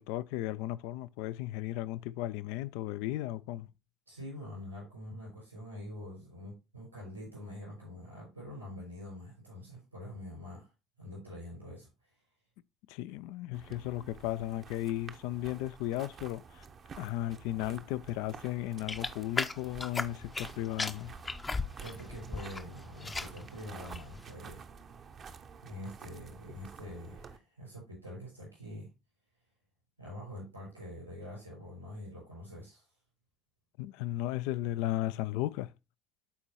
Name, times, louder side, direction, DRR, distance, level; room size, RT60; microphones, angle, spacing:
voice 1, 0.0-3.7 12.9-16.6 17.0-21.1 33.8-35.7, left 15 dB, 65° left, 0.3 m, -35 dB
voice 2, 4.1-10.7 11.0-11.9 21.8-24.6 25.6-28.9 30.0-32.9, left 1 dB, 90° right, 5.5 m, -45 dB
sound 1, 13.5-27.4, right 5 dB, 40° right, 0.7 m, -50 dB
sound 2, 18.9-20.5 20.8-22.6 22.9-23.4 23.8-24.2, left 3 dB, 20° left, 0.6 m, -36 dB
12.5 x 4.5 x 2.8 m
figure-of-eight pair, 55°, 0 cm